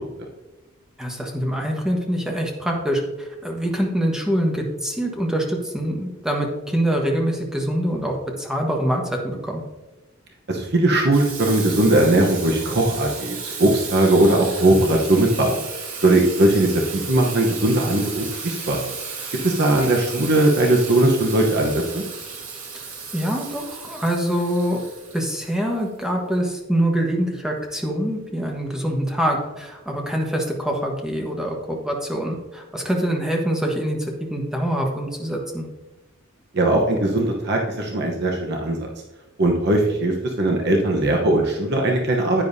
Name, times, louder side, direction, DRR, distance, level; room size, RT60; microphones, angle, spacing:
voice 1, 1.0-9.6 22.7-24.8 25.1-35.7, equal, 5° right, 0 dB, 1.3 m, -25 dB
voice 2, 10.5-15.6 16.0-18.8 19.4-22.0 36.5-38.9 39.4-42.4, right 1 dB, 55° right, 1 dB, 1.0 m, -19 dB
Water tap faucet / Sink (filling or washing), 11.1-25.9, right 5 dB, 90° right, 2.4 m, -34 dB
9.9 x 9.2 x 2.7 m, 1.1 s
head